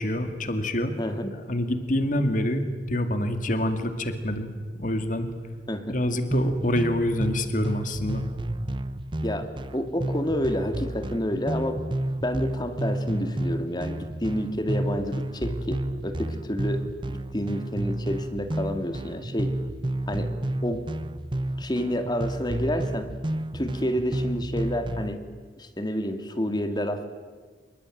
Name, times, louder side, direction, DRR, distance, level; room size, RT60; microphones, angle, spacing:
voice 1, 0.0-1.0 1.5-4.5 4.8-5.3 5.9-8.3, left 1 dB, 50° left, 8 dB, 2.3 m, -26 dB
voice 2, 1.0-1.4 5.7-6.0 9.2-11.8 12.2-19.6 20.1-20.3 20.6-20.9 21.6-23.1 23.5-25.2 25.6-27.1, equal, 25° left, 8 dB, 2.2 m, -29 dB
sound 1, 6.3-25.1, right 1 dB, 30° right, 0.9 m, -31 dB
27.5 x 22.5 x 9.2 m, 1.5 s
head